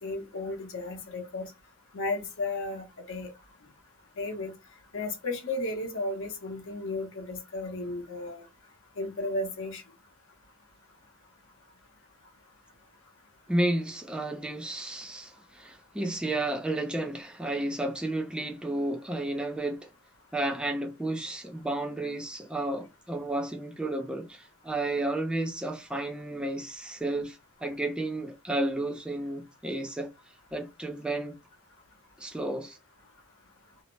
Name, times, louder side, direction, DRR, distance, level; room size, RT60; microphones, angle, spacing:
voice 1, 0.0-1.5 1.9-3.3 4.2-4.5 4.9-8.4 9.0-9.8, left 2 dB, 60° left, 0.8 m, -34 dB
voice 2, 13.5-19.9 20.3-30.1 30.5-31.4 32.2-32.8, right 1 dB, 5° right, 0.3 m, -32 dB
2.6 x 2.0 x 3.0 m
head